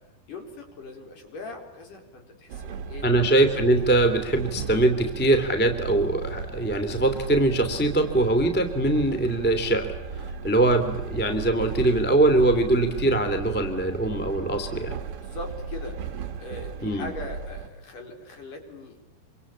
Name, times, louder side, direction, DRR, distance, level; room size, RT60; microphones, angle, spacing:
voice 1, 0.3-3.1 15.2-16.0 16.4-19.0, left 3 dB, 50° left, 3 dB, 5.7 m, -40 dB
Train, 2.5-17.7, right 6 dB, 55° right, 1.7 m, -36 dB
voice 2, 3.0-15.0 16.8-17.1, right 2 dB, 5° left, 7 dB, 1.7 m, -22 dB
27.5 x 25.0 x 8.7 m, 0.94 s
omnidirectional pair, 4.8 m